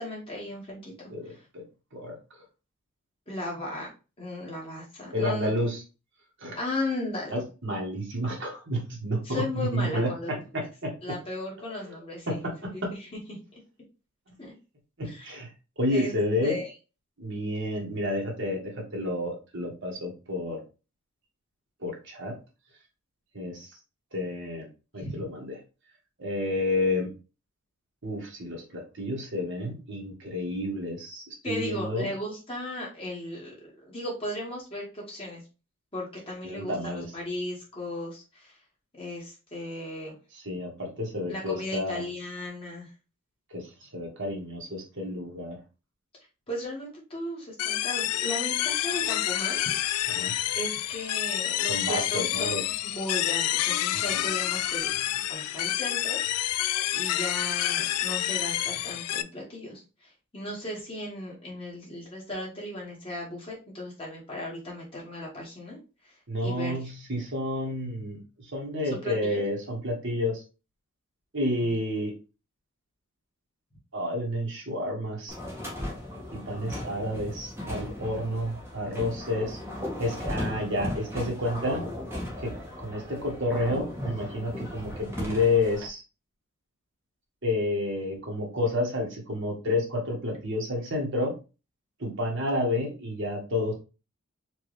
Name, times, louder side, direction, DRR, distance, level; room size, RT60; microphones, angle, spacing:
voice 1, 0.0-0.9 3.3-3.9 4.2-5.5 6.5-7.4 9.2-10.4 11.0-12.4 12.7-12.8 13.3-13.4 14.4-14.5 15.0-15.3 15.9-16.2 16.4-16.7 25.0-25.2 31.4-33.5 33.8-35.4 35.9-38.5 39.0-40.2 41.3-42.9 46.5-49.6 50.5-52.6 52.8-54.9 55.3-56.2 56.5-59.8 60.3-65.8 66.4-66.7 68.9-69.4 71.6-71.7, left 1 dB, 25° left, -3 dB, 1.6 m, -36 dB
voice 2, 1.1-1.6 1.9-2.2 5.1-5.8 6.4-6.6 7.3-11.1 11.6-11.9 12.3-12.7 15.0-15.5 15.8-16.6 17.2-20.6 21.8-22.4 23.3-23.7 24.1-24.7 24.9-25.6 26.2-27.1 28.0-32.1 36.4-37.1 40.3-42.0 43.5-45.6 50.1-50.3 51.7-52.6 53.9-54.3 66.3-70.4 71.3-72.1 73.9-75.3 76.3-79.6 80.0-81.8 82.4-86.0 87.4-91.4 92.0-93.7, left 1 dB, 55° right, 0 dB, 1.4 m, -30 dB
sound 1, 47.6-59.2, left 13 dB, 90° left, 0.3 m, -28 dB
sound 2, 75.3-85.9, left 1 dB, 10° right, 1.0 m, -36 dB
4.6 x 2.7 x 3.2 m, 0.31 s
head